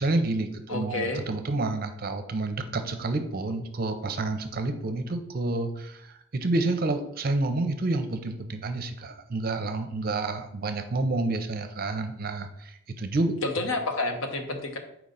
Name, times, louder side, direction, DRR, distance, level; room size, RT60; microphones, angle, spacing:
voice 1, 0.0-6.0 6.3-13.3, right 2 dB, 45° right, 8 dB, 0.6 m, -29 dB
voice 2, 0.7-1.2 13.4-14.8, left 2 dB, 80° left, 5 dB, 0.9 m, -29 dB
4.7 x 3.8 x 5.4 m, 0.77 s
head